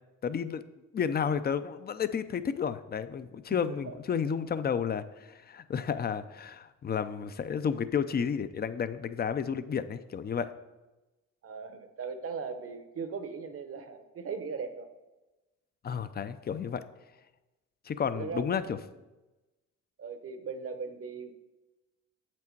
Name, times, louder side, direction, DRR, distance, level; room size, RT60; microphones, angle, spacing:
voice 1, 0.2-0.6 0.9-10.5 15.8-16.8 17.8-18.8, left 7 dB, 30° left, 12 dB, 0.5 m, -31 dB
voice 2, 3.5-4.0 4.3-4.4 11.4-14.9 18.1-18.7 20.0-21.3, right 5 dB, 50° right, 8 dB, 0.9 m, -39 dB
7.8 x 6.0 x 4.6 m, 1.1 s
cardioid pair, 90°, 30 cm